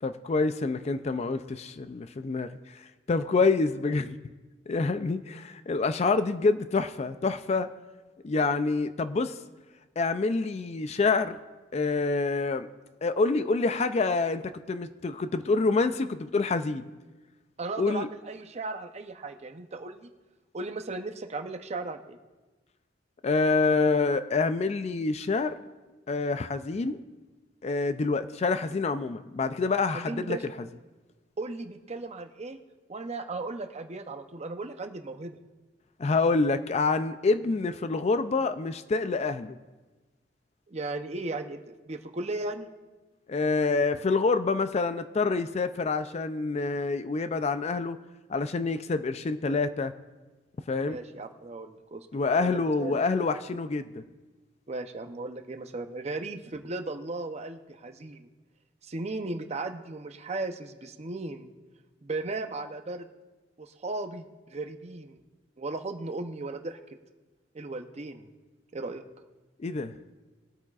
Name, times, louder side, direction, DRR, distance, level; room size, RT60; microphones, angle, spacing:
voice 1, 0.0-2.6 3.1-4.2 4.7-7.7 8.2-9.4 10.0-11.4 11.7-12.7 13.0-16.8 17.8-18.1 23.2-25.6 26.1-27.0 27.6-30.4 36.0-39.6 43.3-48.0 48.3-49.9 50.7-51.0 52.1-54.0 69.6-69.9, left 3 dB, 35° left, 11 dB, 0.4 m, -27 dB
voice 2, 17.6-20.1 20.5-22.2 29.9-30.4 31.4-32.6 32.9-35.3 40.7-42.7 50.8-52.1 52.4-53.0 54.7-58.3 58.8-61.5 62.0-63.1 63.6-65.2 65.6-66.8 67.5-68.3 68.7-69.0, right 2 dB, 35° right, 7 dB, 0.7 m, -36 dB
21.5 x 8.7 x 2.4 m, 1.2 s
head